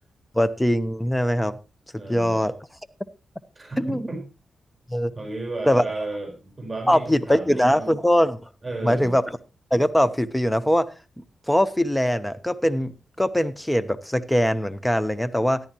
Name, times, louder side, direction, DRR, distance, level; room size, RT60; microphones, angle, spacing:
voice 1, 0.3-1.6 2.1-2.5 3.8-4.1 4.9-5.1 5.7-5.8 6.9-8.5 8.8-9.2 9.7-10.9 11.2-15.6, equal, 5° left, 15 dB, 0.9 m, -22 dB
voice 2, 2.0-2.4 3.5-4.2 5.1-7.9 8.6-9.1, right 2 dB, 25° right, 3 dB, 4.5 m, -34 dB
14.0 x 10.5 x 3.0 m, 0.30 s
cardioid pair, 65°, 0 cm